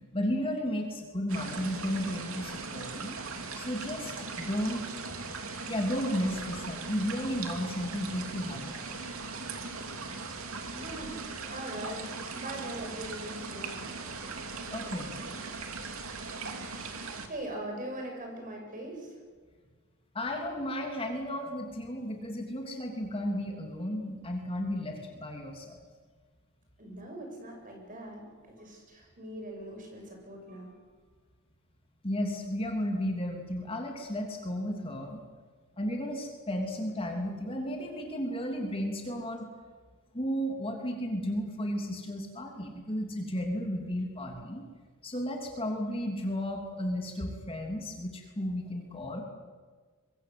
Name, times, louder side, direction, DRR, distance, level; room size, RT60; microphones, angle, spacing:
voice 1, 0.1-3.2 3.5-4.9 5.2-5.4 5.7-8.9 14.7-15.1 15.8-16.0 20.1-25.8 32.0-35.2 35.8-39.5 40.1-44.6 45.0-49.2, equal, 25° left, 2 dB, 3.2 m, -33 dB
sound 1, 1.3-17.3, right 4 dB, 65° right, 2.9 m, -39 dB
voice 2, 10.7-14.1 17.3-19.2 26.8-30.8, right 1 dB, 40° right, 2 dB, 7.5 m, -41 dB
24.0 x 23.5 x 8.0 m, 1.5 s
head